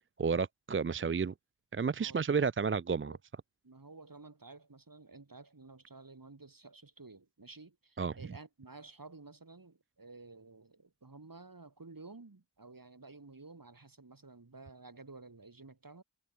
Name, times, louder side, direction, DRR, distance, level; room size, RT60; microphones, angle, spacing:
voice 1, 0.2-1.3 1.7-3.1 8.0-8.2, right 5 dB, 30° right, 0.4 m, -31 dB
voice 2, 1.9-2.4 3.0-3.2 3.6-16.0, right 3 dB, 55° right, 3.3 m, -53 dB
wide cardioid pair, 45°, 40 cm